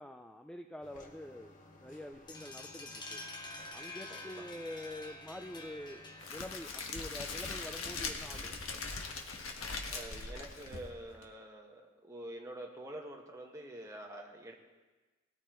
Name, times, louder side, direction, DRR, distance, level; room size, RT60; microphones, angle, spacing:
voice 1, 0.0-3.2 3.7-6.0 6.3-8.5, left 1 dB, 5° left, 5 dB, 0.4 m, -46 dB
sound 1, 0.8-6.3, left 2 dB, 40° left, 1.7 m, -57 dB
sound 2, 2.3-7.8, left 2 dB, 20° left, 1.1 m, -48 dB
voice 2, 4.1-4.4 9.9-14.5, right 1 dB, 15° right, 0 dB, 1.6 m, -47 dB
Crackle, 6.2-11.3, left 4 dB, 70° left, 1.5 m, -41 dB
19.5 x 13.5 x 3.1 m, 1.2 s
head